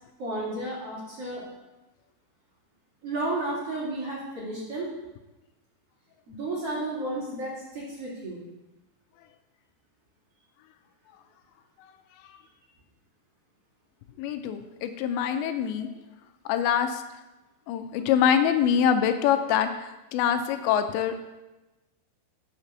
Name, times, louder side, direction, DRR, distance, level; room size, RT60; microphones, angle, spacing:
voice 1, 0.2-1.4 3.0-4.9 6.3-8.4, right 2 dB, 40° right, -6 dB, 3.0 m, -32 dB
voice 2, 14.2-15.9 16.5-17.0 17.7-21.1, left 8 dB, 85° left, 8 dB, 2.8 m, -24 dB
8.1 x 6.6 x 6.9 m, 1.0 s
omnidirectional pair, 5.2 m